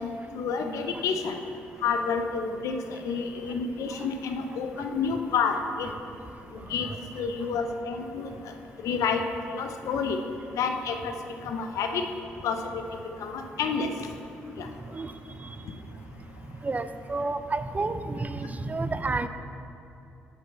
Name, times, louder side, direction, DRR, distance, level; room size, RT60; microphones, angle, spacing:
voice 1, 0.0-1.4 1.8-5.9 6.7-6.9 7.1-8.3 8.8-9.2 9.5-10.2 10.5-11.1 11.4-12.0 12.4-12.8 13.2-13.9 14.6-14.7, left 5 dB, 70° left, 6 dB, 0.6 m, -29 dB
voice 2, 16.6-19.3, right 3 dB, 25° right, 11 dB, 0.5 m, -30 dB
6.4 x 6.0 x 5.3 m, 2.7 s
hypercardioid pair, 45°, 6 cm